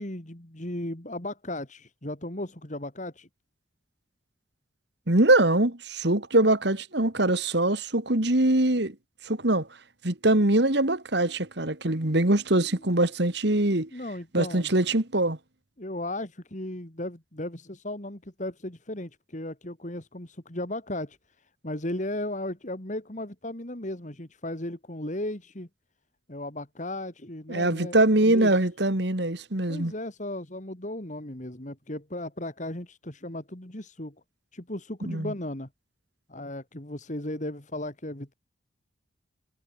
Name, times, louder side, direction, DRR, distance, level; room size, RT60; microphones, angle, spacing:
voice 1, 0.0-3.3 12.7-12.8 13.9-14.7 15.8-21.2 21.6-25.7 26.3-28.6 29.7-34.1 34.5-35.7 36.3-38.3, left 1 dB, 40° left, 2.5 m, -36 dB
voice 2, 5.1-8.9 9.3-9.7 10.0-13.9 14.3-15.4 27.5-29.9 35.1-35.3, right 1 dB, 60° right, 2.2 m, -23 dB
head